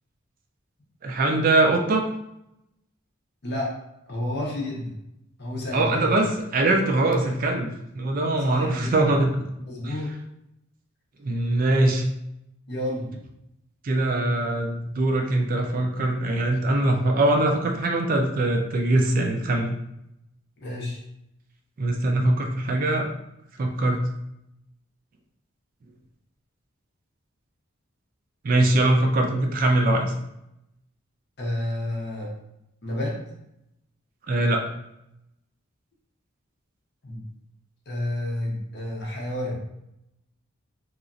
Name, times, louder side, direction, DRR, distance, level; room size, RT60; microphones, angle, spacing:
voice 1, 1.0-2.0 5.7-9.5 9.8-9.9 11.2-12.0 13.8-19.8 21.8-23.1 23.6-24.0 28.4-30.1 34.3-34.6, right 2 dB, 40° right, 3 dB, 0.3 m, -22 dB
voice 2, 4.1-4.9 5.4-6.2 8.4-9.0 9.7-10.1 12.7-13.1 20.6-21.0 31.4-32.3 32.8-33.2 37.0-37.2 37.9-39.6, left 1 dB, 50° left, -2 dB, 0.7 m, -30 dB
2.9 x 2.3 x 2.5 m, 0.82 s
head